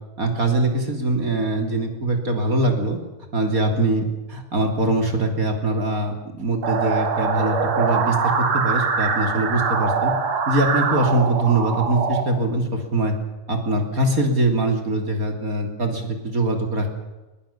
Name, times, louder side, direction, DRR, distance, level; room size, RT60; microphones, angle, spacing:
voice 1, 0.2-3.0 3.3-10.1 10.5-13.1 13.5-16.9, right 2 dB, 25° right, 4 dB, 3.1 m, -22 dB
sound 1, 6.6-12.2, right 5 dB, 55° right, 3.6 m, -23 dB
21.5 x 21.0 x 7.3 m, 1.1 s
omnidirectional pair, 3.7 m